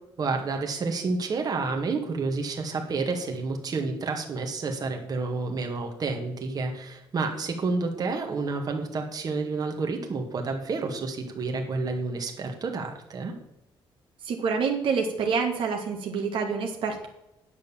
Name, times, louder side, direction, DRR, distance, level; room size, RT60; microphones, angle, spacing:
voice 1, 0.2-13.3, right 3 dB, 45° right, 3 dB, 1.8 m, -30 dB
voice 2, 14.2-17.1, right 5 dB, 65° right, 2 dB, 1.7 m, -27 dB
9.4 x 6.5 x 7.2 m, 0.88 s
cardioid pair, 115°, 9 cm